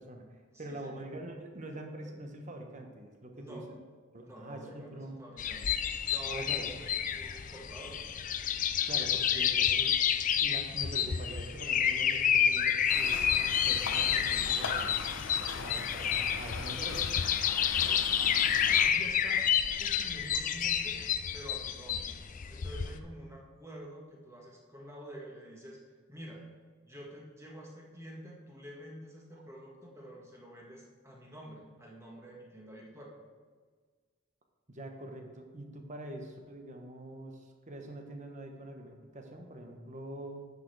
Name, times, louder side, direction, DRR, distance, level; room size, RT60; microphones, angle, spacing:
voice 1, 0.0-3.8 4.1-5.2 6.3-6.7 8.9-10.0 10.4-14.9 15.6-17.1 29.3-29.4 34.7-40.4, right 1 dB, 35° right, 3 dB, 1.2 m, -44 dB
voice 2, 0.5-1.0 3.3-3.7 4.2-8.0 17.8-19.5 19.8-21.0 21.3-22.1 22.5-25.8 26.1-26.4 26.8-33.1, equal, 15° right, -2 dB, 1.7 m, -48 dB
sound 1, 5.4-23.0, left 8 dB, 40° left, 0.4 m, -29 dB
sound 2, 12.9-18.9, left 4 dB, 70° left, 0.7 m, -40 dB
9.7 x 6.6 x 4.7 m, 1.5 s
head